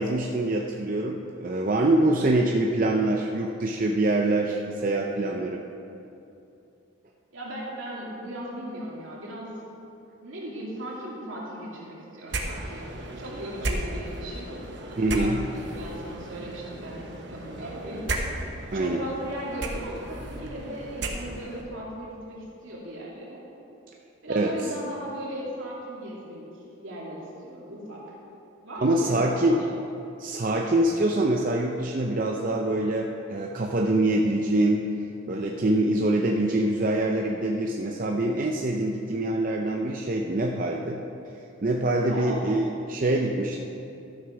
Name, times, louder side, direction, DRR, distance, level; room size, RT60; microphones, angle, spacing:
voice 1, 0.0-5.6 15.0-15.4 18.7-19.0 24.3-24.5 28.8-29.6 30.2-34.8 35.3-41.0 41.6-43.6, right 1 dB, 40° right, 0 dB, 0.5 m, -24 dB
voice 2, 7.3-9.5 10.2-12.9 13.2-14.5 14.9-18.1 18.4-23.4 24.2-28.2 28.6-29.7 42.0-42.5, right 1 dB, 75° right, -5 dB, 2.7 m, -37 dB
sound 1, 12.3-21.7, right 2 dB, 60° right, 1.1 m, -35 dB
13.0 x 6.1 x 5.9 m, 2.8 s
head